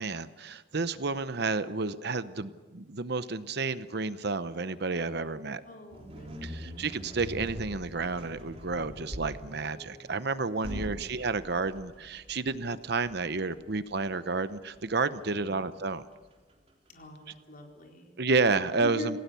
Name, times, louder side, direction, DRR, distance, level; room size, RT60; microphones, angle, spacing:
voice 1, 0.0-5.6 6.4-16.0 18.2-19.2, right 3 dB, 60° right, 13 dB, 0.9 m, -31 dB
voice 2, 5.7-6.8 10.7-10.9 15.3-15.6 16.9-18.1 18.8-19.1, left 1 dB, 50° left, 1 dB, 4.3 m, -42 dB
sound 1, 5.9-17.0, equal, 35° right, 3.8 m, -44 dB
27.0 x 17.5 x 7.0 m, 1.3 s
head